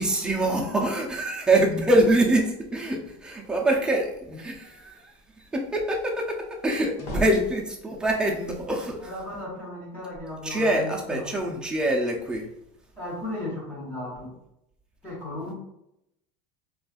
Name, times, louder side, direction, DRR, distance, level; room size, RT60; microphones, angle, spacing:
voice 1, 0.0-9.2 10.4-12.5, right 1 dB, 5° right, -1 dB, 0.4 m, -25 dB
sound 1, 6.6-8.1, equal, 40° left, 0.8 m, -36 dB
voice 2, 9.0-10.6 11.1-11.2 13.0-14.3 15.0-15.5, left 1 dB, 15° left, -6 dB, 1.2 m, -35 dB
4.0 x 2.3 x 2.4 m, 0.83 s
cardioid pair, 165°, 16 cm